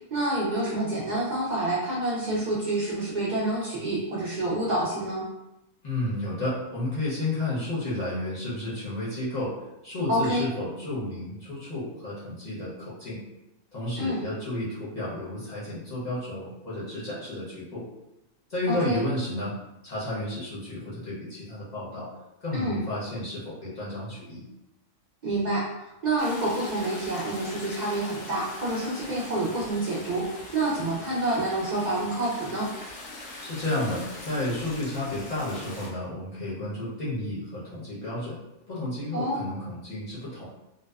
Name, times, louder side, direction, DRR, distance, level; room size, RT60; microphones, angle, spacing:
voice 1, 0.1-5.2 10.1-10.5 14.0-14.3 18.7-19.0 22.5-22.8 25.2-30.2 30.5-32.7 39.1-39.4, right 1 dB, 65° right, -7 dB, 0.4 m, -28 dB
voice 2, 5.8-9.5 9.8-13.2 13.7-17.8 18.5-19.5 19.8-22.1 22.4-24.4 33.4-38.4 38.7-40.5, left 1 dB, 40° left, -8 dB, 0.7 m, -32 dB
sound 1, 26.2-35.9, left 2 dB, 80° left, 1.0 m, -42 dB
2.6 x 2.1 x 2.3 m, 0.94 s
omnidirectional pair, 1.4 m